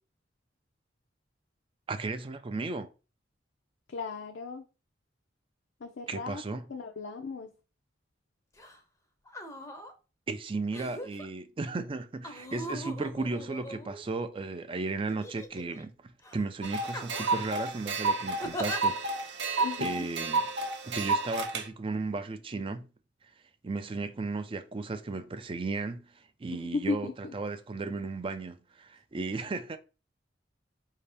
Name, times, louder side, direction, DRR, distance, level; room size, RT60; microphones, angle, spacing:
voice 1, 1.9-2.9 6.1-6.6 10.3-20.5 20.8-22.9 23.6-27.1 27.3-29.8, right 3 dB, 30° right, 0.4 m, -35 dB
voice 2, 3.9-4.6 5.8-6.4 6.7-7.5 19.6-20.1 26.6-27.3, left 4 dB, 70° left, 0.5 m, -36 dB
sound 1, 8.6-8.8 9.3-9.9 10.7-11.3 12.2-14.3 15.1-15.8 16.2-16.4 16.9-17.5 18.4-18.8 19.6-19.7, equal, 15° left, 0.6 m, -40 dB
sound 2, 16.6-21.6, right 3 dB, 65° right, 0.7 m, -31 dB
4.7 x 2.8 x 3.4 m
head